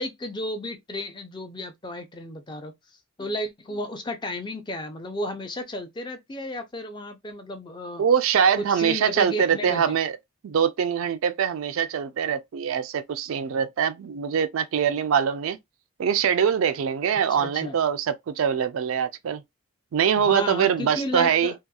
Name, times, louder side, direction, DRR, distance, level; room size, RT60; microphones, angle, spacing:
voice 1, 0.0-2.7 3.2-8.0 8.7-10.0 17.3-17.8 20.2-21.5, left 1 dB, 20° left, 0.4 m, -33 dB
voice 2, 8.0-10.2 10.4-15.6 16.0-19.4 19.9-21.5, right 7 dB, 70° right, 0.3 m, -23 dB
2.8 x 2.3 x 2.3 m
head